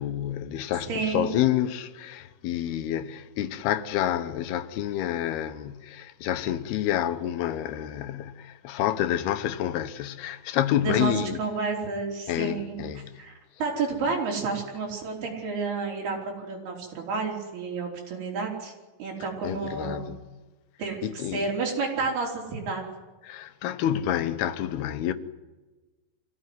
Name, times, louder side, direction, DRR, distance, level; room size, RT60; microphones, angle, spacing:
voice 1, 0.0-11.4 12.3-13.2 19.4-20.3 21.0-21.4 23.2-25.1, left 11 dB, 90° left, 3.0 m, -28 dB
voice 2, 0.9-1.3 10.8-12.9 13.2-13.3 13.6-18.7 19.0-20.1 20.8-22.8, right 4 dB, 85° right, 5.7 m, -30 dB
24.5 x 16.0 x 9.5 m
omnidirectional pair, 4.4 m